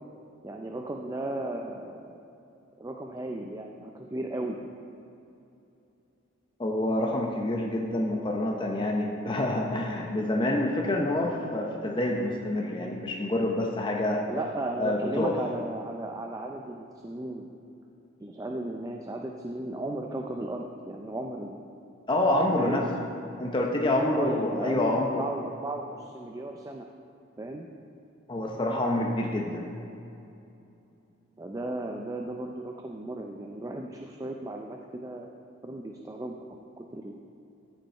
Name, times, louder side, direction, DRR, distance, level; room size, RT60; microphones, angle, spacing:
voice 1, 0.4-2.2 2.8-4.6 14.3-17.5 18.2-21.6 22.6-22.8 24.1-26.9 27.4-27.7 31.4-35.3 35.6-36.3 36.8-37.2, right 1 dB, 20° right, 2 dB, 0.4 m, -35 dB
voice 2, 6.6-14.2 14.8-15.3 22.1-22.8 23.4-25.2 28.3-29.7, left 1 dB, 25° left, 0 dB, 0.7 m, -27 dB
13.5 x 5.3 x 4.3 m, 2.7 s
head